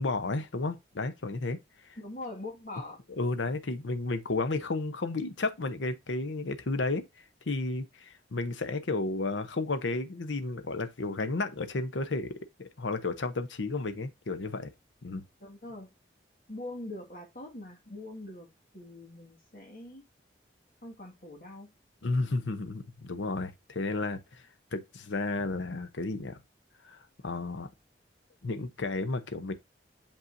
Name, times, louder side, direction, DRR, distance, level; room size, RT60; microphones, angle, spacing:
voice 1, 0.0-1.6 3.1-7.0 7.5-14.7 15.0-15.2 22.0-24.4 24.7-26.4 26.8-27.0 27.2-27.7 28.4-29.5, left 3 dB, 90° left, 0.8 m, -32 dB
voice 2, 2.0-3.0 15.4-15.9 16.5-20.1 20.8-21.7, left 2 dB, 50° left, 1.9 m, -43 dB
7.2 x 5.4 x 2.6 m
head